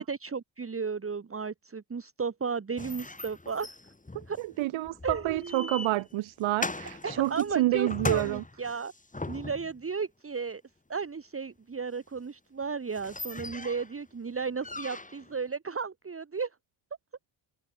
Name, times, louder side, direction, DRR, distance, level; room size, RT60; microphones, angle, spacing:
voice 1, 0.0-3.7 4.3-4.4 5.0-5.7 7.0-8.9 9.3-10.6 10.9-16.5, right 5 dB, 25° right, 1.8 m, -34 dB
sound 1, 2.8-9.8 12.2-12.3 12.6-12.7 12.9-14.0 14.6-15.3, left 2 dB, 15° left, 5.1 m, -39 dB
voice 2, 4.1-8.4, right 17 dB, 70° right, 0.6 m, -29 dB
cardioid pair, 105°, 49 cm